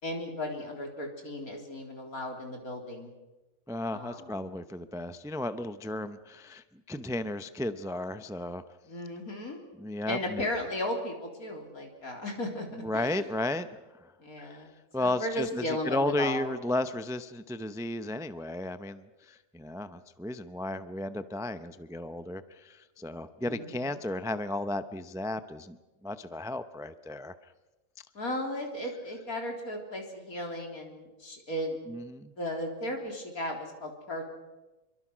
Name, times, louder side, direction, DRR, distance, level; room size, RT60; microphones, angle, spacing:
voice 1, 0.0-3.1 3.9-4.3 8.8-9.6 10.1-12.7 12.9-13.3 14.2-16.5 23.4-24.0 28.1-31.8 32.4-34.3, left 1 dB, 75° left, 2 dB, 4.2 m, -35 dB
voice 2, 3.7-8.6 9.8-10.5 12.8-13.7 14.4-14.6 14.9-25.8 26.0-27.3 31.9-32.3, left 1 dB, 5° right, 11 dB, 0.5 m, -34 dB
27.0 x 23.5 x 6.3 m, 1.1 s
omnidirectional pair, 1.5 m